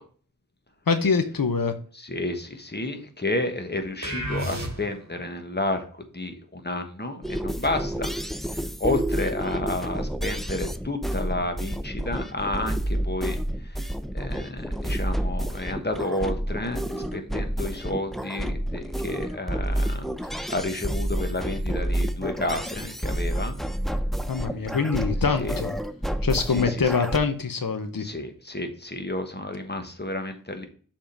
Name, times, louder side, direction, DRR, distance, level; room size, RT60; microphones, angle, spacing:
voice 1, 0.9-1.7 24.3-25.7 26.2-28.1, left 5 dB, 90° left, 0.7 m, -24 dB
voice 2, 1.9-5.8 6.1-8.1 8.5-23.6 25.4-25.6 26.5-27.0 28.0-30.7, left 2 dB, 30° left, 1.2 m, -31 dB
sound 1, 4.0-5.2, equal, 55° right, 1.5 m, -31 dB
sound 2, 7.2-27.2, right 1 dB, ahead, 0.5 m, -29 dB
7.0 x 3.7 x 5.1 m
wide cardioid pair, 40°, 33 cm